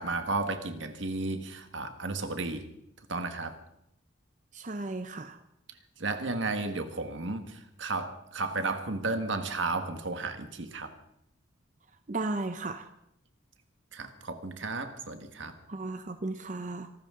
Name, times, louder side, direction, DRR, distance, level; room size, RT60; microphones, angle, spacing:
voice 1, 0.0-2.7 3.1-3.6 6.0-10.9 13.9-15.5, right 3 dB, 80° right, 1.7 m, -33 dB
voice 2, 4.5-5.4 12.1-12.9 15.7-16.9, right 2 dB, 40° right, 0.7 m, -35 dB
26.0 x 13.5 x 3.8 m
head